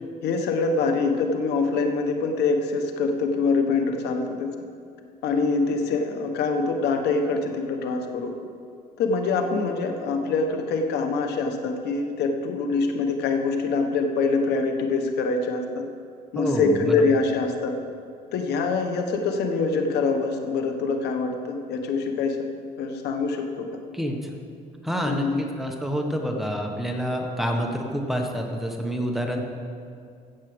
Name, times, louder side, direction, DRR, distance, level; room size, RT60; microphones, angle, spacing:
voice 1, 0.2-4.5 5.2-8.3 9.0-15.9 16.3-17.8 18.3-22.4 22.8-23.7 25.1-25.4, left 4 dB, 75° left, 5 dB, 1.3 m, -24 dB
voice 2, 16.3-17.0 23.9-24.3 24.8-29.4, equal, ahead, 1 dB, 1.4 m, -28 dB
14.5 x 7.5 x 5.1 m, 2.4 s
cardioid pair, 110°, 17 cm